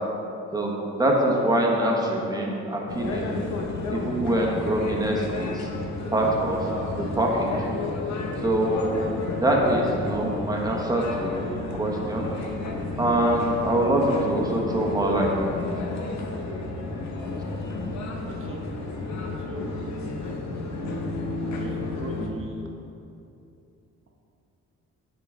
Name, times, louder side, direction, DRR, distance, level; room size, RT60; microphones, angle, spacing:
voice 1, 0.5-3.3 3.9-5.7 6.1-6.7 6.9-7.5 8.4-8.7 9.4-12.3 13.0-15.7, right 1 dB, 10° right, -2 dB, 1.2 m, -24 dB
sound 1, 2.9-22.3, left 2 dB, 65° left, 0.9 m, -32 dB
voice 2, 18.2-18.6 19.4-19.7 20.2-20.3 21.5-22.6, right 2 dB, 45° right, 0 dB, 1.1 m, -40 dB
9.3 x 3.9 x 3.7 m, 2.7 s
cardioid pair, 90°, 30 cm